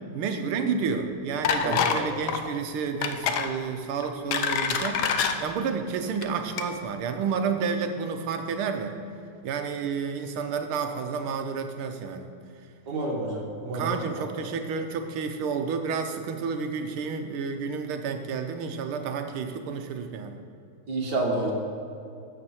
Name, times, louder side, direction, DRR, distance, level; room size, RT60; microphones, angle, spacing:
voice 1, 0.1-9.0 9.4-12.3 13.7-20.4, right 5 dB, 75° right, 6 dB, 1.6 m, -30 dB
sound 1, 1.4-2.0 2.3-2.5 3.0-3.5 4.0-5.3 6.1-6.3 6.6-6.7, left 7 dB, 70° left, 1.0 m, -26 dB
voice 2, 1.6-2.1 12.9-13.9 14.1-14.2 20.9-21.5, right 2 dB, 50° right, -2 dB, 2.2 m, -29 dB
13.0 x 7.5 x 4.4 m, 2.5 s
omnidirectional pair, 2.4 m